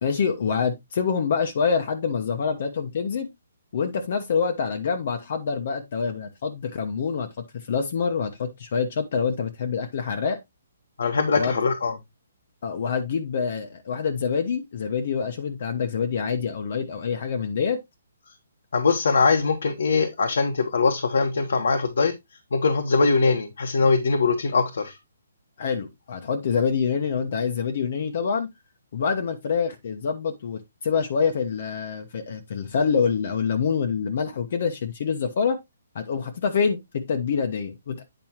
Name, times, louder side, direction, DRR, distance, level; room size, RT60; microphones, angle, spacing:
voice 1, 0.0-3.3 3.7-7.3 7.5-10.4 11.4-11.5 12.6-17.8 25.6-28.5 28.9-35.6 35.9-38.0, left 6 dB, 50° left, 1.0 m, -26 dB
voice 2, 11.0-11.9 18.7-22.1 22.5-25.0, left 4 dB, 75° left, 1.3 m, -22 dB
9.0 x 5.3 x 2.9 m
hypercardioid pair, 160°, 0 cm